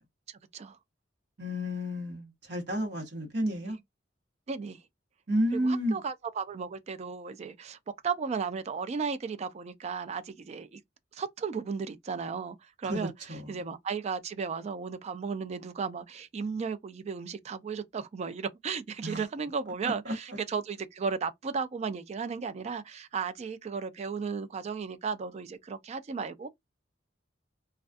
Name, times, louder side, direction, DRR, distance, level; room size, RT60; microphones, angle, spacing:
voice 1, 0.3-0.8 3.6-3.7 4.5-4.8 5.5-7.8 8.0-10.8 11.1-13.1 13.5-26.5, right 5 dB, 35° right, 0.3 m, -35 dB
voice 2, 1.4-3.8 5.3-6.0 12.8-13.7 19.0-19.2 19.8-20.4, equal, 60° right, 0.9 m, -31 dB
2.3 x 2.3 x 2.5 m
head